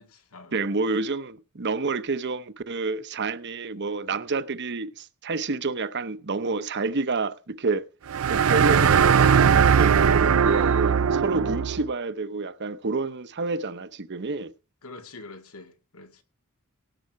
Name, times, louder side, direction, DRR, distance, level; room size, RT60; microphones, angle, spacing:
voice 1, 0.0-0.6 0.9-1.0 10.4-11.1 14.8-16.2, left 3 dB, 90° left, 2.2 m, -45 dB
voice 2, 0.5-7.8 8.3-14.5, right 3 dB, 55° right, 0.9 m, -29 dB
sound 1, 8.1-11.8, right 7 dB, 85° right, 0.5 m, -19 dB
18.0 x 7.8 x 4.7 m
head